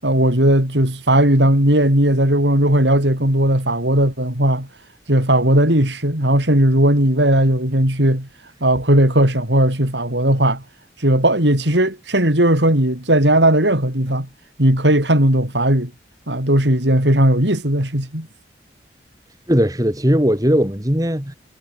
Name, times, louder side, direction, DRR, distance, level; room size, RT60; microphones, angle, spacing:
voice 1, 0.0-4.7 5.1-8.3 8.6-10.6 11.0-14.3 14.6-15.9 16.3-18.3, right 1 dB, 85° right, 7.1 m, -16 dB
voice 2, 19.5-21.3, equal, 20° right, 3.1 m, -18 dB
head